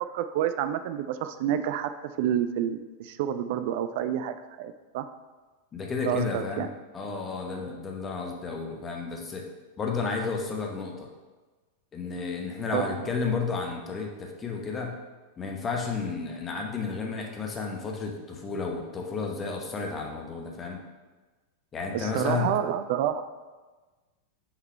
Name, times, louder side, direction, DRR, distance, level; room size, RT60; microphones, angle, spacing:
voice 1, 0.1-1.9 2.2-5.1 6.1-6.7 12.7-13.1 21.9-23.2, right 10 dB, 50° right, 10 dB, 0.3 m, -29 dB
voice 2, 5.7-6.7 6.9-9.4 9.8-11.1 11.9-15.0 15.4-20.8 21.7-22.6, left 4 dB, 20° left, 1 dB, 0.9 m, -32 dB
5.8 x 3.9 x 4.3 m, 1.3 s
figure-of-eight pair, 90°, 0 cm